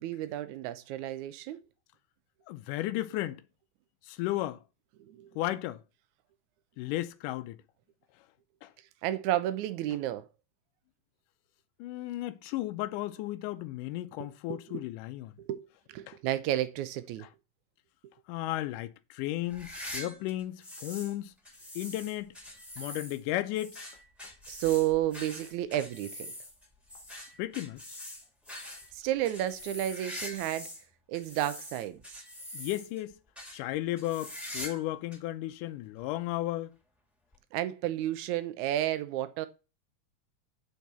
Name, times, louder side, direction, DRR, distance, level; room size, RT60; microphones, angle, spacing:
voice 1, 0.0-1.6 5.1-5.3 9.0-10.3 14.5-14.8 15.4-17.3 24.5-26.3 28.9-30.7 31.1-32.0 37.5-39.5, right 13 dB, 75° right, 2.0 m, -31 dB
voice 2, 2.5-3.4 4.0-4.6 5.4-5.8 6.8-7.6 8.6-8.7 11.8-15.3 16.1-16.2 18.3-21.3 21.8-22.3 22.8-23.9 27.4-28.0 32.5-33.2 33.5-36.8, left 15 dB, 80° left, 2.1 m, -34 dB
sound 1, 19.5-21.1 21.4-30.8 31.1-33.0 33.3-33.6 34.0-34.9 35.1-35.2 36.0-36.1 37.3-37.4, left 1 dB, ahead, 1.4 m, -44 dB
8.3 x 4.5 x 6.7 m
omnidirectional pair, 3.8 m